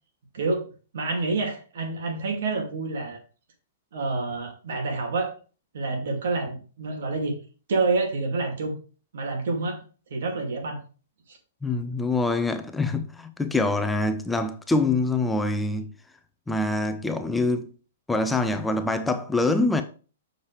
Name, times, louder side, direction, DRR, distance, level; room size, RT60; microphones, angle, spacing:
voice 1, 0.3-0.7 0.9-3.2 3.9-5.3 5.7-7.4 7.7-8.8 9.1-9.8 10.1-10.8 11.3-11.4, right 3 dB, 70° right, 2.6 m, -28 dB
voice 2, 11.6-15.9 16.5-17.7 18.1-19.8, left 2 dB, 5° left, 0.6 m, -25 dB
7.1 x 6.5 x 3.4 m
hypercardioid pair, 130°, 0 cm